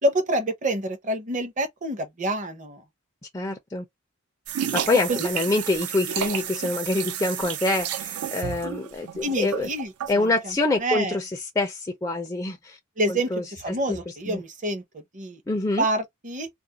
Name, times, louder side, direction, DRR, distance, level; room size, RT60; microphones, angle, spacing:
voice 1, 0.0-2.8 5.1-5.2 9.2-9.9 10.2-10.3 10.8-11.2 13.0-13.3 13.6-15.4 15.8-16.5, right 1 dB, 35° right, 0.7 m, -27 dB
voice 2, 3.3-3.8 4.7-9.7 10.1-12.8 13.1-14.4 15.5-15.9, left 2 dB, 15° left, 0.3 m, -26 dB
sound 1, 4.5-10.3, right 9 dB, 85° right, 0.4 m, -31 dB
2.4 x 2.0 x 2.7 m
head